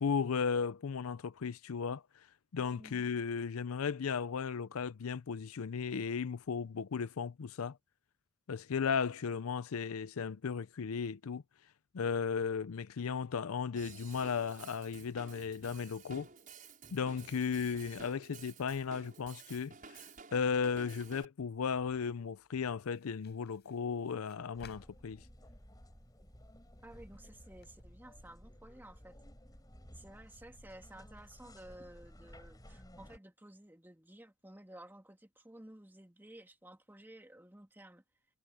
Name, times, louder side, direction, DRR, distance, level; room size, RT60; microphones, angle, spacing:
voice 1, 0.0-2.0 2.5-7.8 8.5-11.4 11.9-16.3 16.9-20.0 20.3-25.2, left 6 dB, 75° left, 0.5 m, -35 dB
voice 2, 2.7-3.0 26.8-29.2 29.9-38.0, right 1 dB, 10° right, 1.9 m, -54 dB
Drum kit / Drum, 13.8-21.3, right 5 dB, 40° right, 5.9 m, -53 dB
sound 1, 21.7-27.8, left 4 dB, 50° left, 6.3 m, -63 dB
sound 2, 24.5-33.2, equal, 20° left, 5.5 m, -56 dB
head